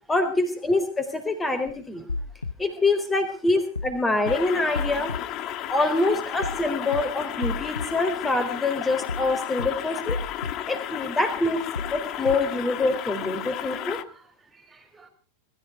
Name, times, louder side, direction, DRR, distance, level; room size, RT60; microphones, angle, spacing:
voice 1, 0.1-2.1 2.6-5.1 5.7-10.2 10.7-11.6 11.9-14.0, left 2 dB, 10° left, 8 dB, 4.0 m, -25 dB
sound 1, 2.1-2.5 3.8-4.0 4.3-4.4 4.8-5.2 6.4-6.6 6.9-7.0 7.4-7.9 9.1-9.3 9.6-9.7 10.1-10.5 11.8-12.0 12.3-12.4, left 3 dB, 80° left, 0.8 m, -31 dB
sound 2, 4.3-14.0, left 12 dB, 35° left, 1.1 m, -33 dB
voice 2, 13.1-15.1, right 4 dB, 15° right, 7 dB, 4.8 m, -56 dB
21.0 x 14.5 x 4.8 m, 0.40 s
figure-of-eight pair, 90°, 0 cm